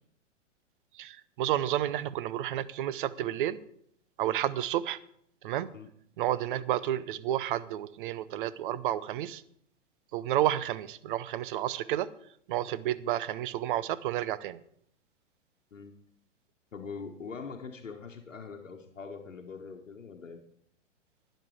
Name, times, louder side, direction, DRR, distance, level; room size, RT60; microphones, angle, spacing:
voice 1, 0.9-3.6 4.2-5.0 5.4-5.7 6.2-9.4 10.1-12.1 12.5-14.6, right 12 dB, 45° right, 16 dB, 0.7 m, -31 dB
voice 2, 16.7-20.4, left 5 dB, 80° left, 4 dB, 1.2 m, -43 dB
12.5 x 10.0 x 4.8 m, 0.68 s
figure-of-eight pair, 110°, 38 cm